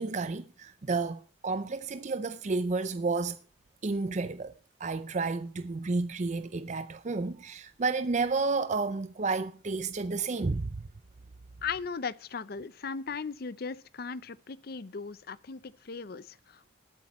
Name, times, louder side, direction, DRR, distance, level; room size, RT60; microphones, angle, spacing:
voice 1, 0.0-3.4 3.8-4.5 4.8-10.8, right 3 dB, 40° right, 0.5 m, -31 dB
voice 2, 11.6-16.8, left 5 dB, 55° left, 0.6 m, -38 dB
20.0 x 8.3 x 3.1 m
head